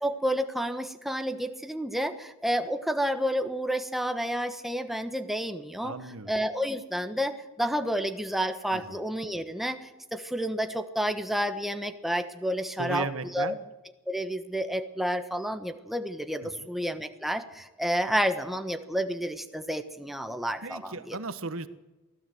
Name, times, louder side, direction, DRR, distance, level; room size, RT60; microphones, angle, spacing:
voice 1, 0.0-5.9 6.3-13.1 13.3-13.5 14.1-21.2, equal, ahead, 7 dB, 1.2 m, -30 dB
voice 2, 5.8-6.3 8.7-8.8 12.8-13.6 16.4-16.7 20.6-21.7, right 3 dB, 80° right, 12 dB, 1.4 m, -35 dB
24.0 x 16.5 x 7.9 m, 1.1 s
head